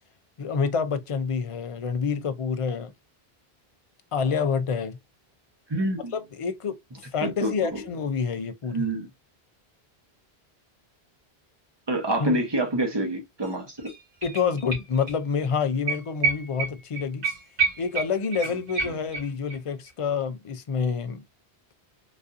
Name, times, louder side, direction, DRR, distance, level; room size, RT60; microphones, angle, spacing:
voice 1, 0.4-2.9 4.1-5.0 6.1-6.7 7.1-8.9 12.2-12.4 14.2-17.2 17.8-21.2, left 5 dB, 45° left, 0.4 m, -27 dB
voice 2, 5.7-6.2 7.2-7.8 8.7-9.1 11.9-13.9, right 1 dB, 25° right, 0.9 m, -27 dB
sound 1, 13.4-13.5 13.8-15.2 15.4-15.5 15.9-19.6 19.9-20.0, right 5 dB, 60° right, 1.7 m, -29 dB
3.9 x 2.6 x 2.4 m
omnidirectional pair, 1.0 m